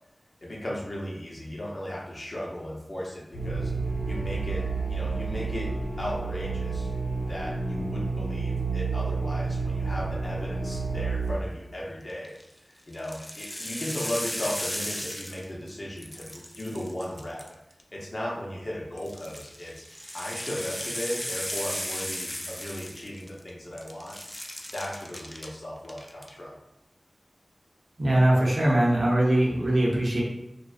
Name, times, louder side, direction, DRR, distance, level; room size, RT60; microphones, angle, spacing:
voice 1, 0.4-3.7 4.1-6.9 7.2-12.3 12.6-17.4 17.9-19.8 20.1-24.2 24.7-26.6, equal, 55° left, -3 dB, 0.6 m, -36 dB
sound 1, 3.3-11.4, right 4 dB, 85° left, 0.9 m, -30 dB
sound 2, 12.1-12.4 12.9-15.7 16.0-17.8 19.0-23.5 23.8-25.5 25.8-26.3, equal, 10° left, 0.3 m, -36 dB
voice 2, 28.0-30.2, right 1 dB, 70° right, -5 dB, 0.7 m, -22 dB
2.4 x 2.2 x 2.4 m, 0.85 s
wide cardioid pair, 55°, 0 cm